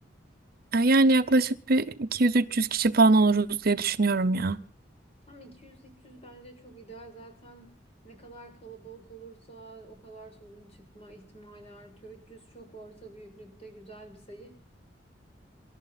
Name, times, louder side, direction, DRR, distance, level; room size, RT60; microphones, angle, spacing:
voice 1, 0.7-4.6, right 2 dB, 55° right, 0.8 m, -22 dB
voice 2, 5.3-7.7 8.0-14.5, right 3 dB, 35° left, 6.3 m, -48 dB
27.0 x 12.5 x 4.1 m
head